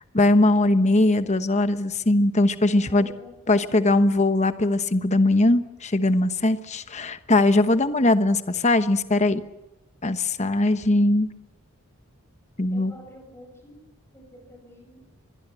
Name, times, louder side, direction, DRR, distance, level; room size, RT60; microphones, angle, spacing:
voice 1, 0.1-3.1 3.5-9.4 10.0-11.3 12.6-12.9, left 2 dB, 30° left, 11 dB, 1.1 m, -20 dB
voice 2, 2.7-4.0 12.7-13.8 14.1-15.0, equal, 10° left, 4 dB, 7.3 m, -48 dB
25.0 x 21.5 x 7.8 m, 0.96 s
head